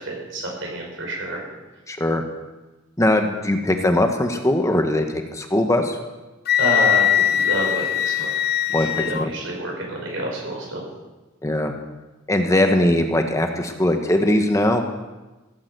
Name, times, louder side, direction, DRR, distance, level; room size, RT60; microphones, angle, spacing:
voice 1, 0.0-1.4 6.6-8.3 8.7-10.8, right 1 dB, 75° right, -1 dB, 6.0 m, -28 dB
voice 2, 1.9-2.2 3.0-6.0 8.7-9.3 11.4-11.7 12.3-14.8, left 1 dB, 15° left, 5 dB, 1.2 m, -20 dB
Wind instrument woodwind instrument, 6.5-9.3, left 10 dB, 55° left, 0.6 m, -21 dB
16.5 x 9.9 x 8.0 m, 1.1 s
head